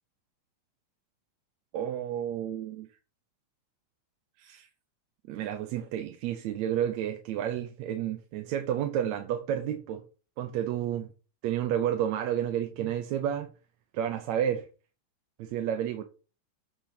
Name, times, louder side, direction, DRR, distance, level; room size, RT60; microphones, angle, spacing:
voice 1, 1.7-2.9 4.4-4.7 5.3-10.0 10.4-11.1 11.4-13.5 13.9-14.7 15.4-16.0, right 10 dB, 75° right, 2.0 m, -31 dB
7.3 x 5.3 x 5.7 m
omnidirectional pair, 3.4 m